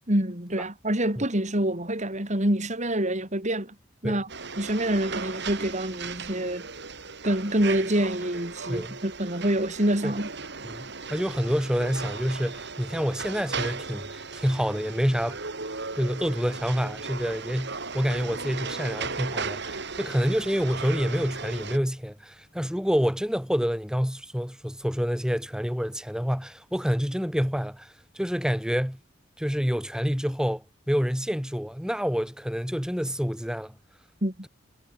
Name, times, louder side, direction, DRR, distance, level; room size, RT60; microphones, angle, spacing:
voice 1, 0.1-3.8 4.0-4.3 4.6-6.7 7.2-10.3 34.2-34.3, right 1 dB, 35° right, 5.2 m, -26 dB
sound 1, 4.3-21.8, right 4 dB, 60° right, 4.2 m, -36 dB
voice 2, 10.6-15.4 16.0-29.0 29.4-33.7, equal, 5° right, 3.4 m, -28 dB
head